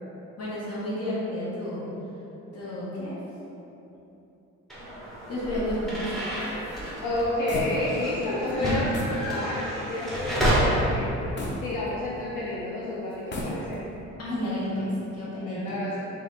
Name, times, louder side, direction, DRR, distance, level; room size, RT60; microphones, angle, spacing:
voice 1, 0.4-1.9 2.5-3.2 5.3-6.0 8.4-8.8 14.2-15.8, left 1 dB, 55° left, -8 dB, 1.4 m, -31 dB
sound 1, 4.7-10.6, equal, ahead, 1.0 m, -31 dB
sound 2, 5.4-8.2 8.5-8.6 8.9-9.3 9.7-9.8 11.4-12.4 13.1-14.0, equal, 35° left, 0.7 m, -36 dB
voice 2, 7.0-11.2 11.6-13.8 15.4-16.1, left 1 dB, 80° left, -6 dB, 0.6 m, -30 dB
3.2 x 2.7 x 3.9 m, 3.0 s
cardioid pair, 90°, 30 cm